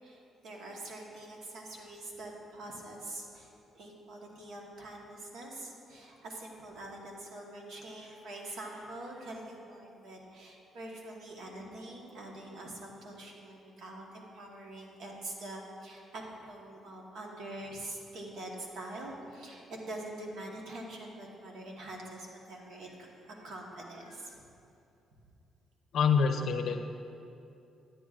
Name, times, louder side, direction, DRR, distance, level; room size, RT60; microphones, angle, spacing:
voice 1, 0.0-24.4, right 1 dB, 75° right, 0 dB, 1.2 m, -45 dB
voice 2, 25.9-26.8, left 6 dB, 65° left, 7 dB, 0.5 m, -26 dB
9.8 x 9.1 x 2.4 m, 2.7 s
cardioid pair, 90°, 0 cm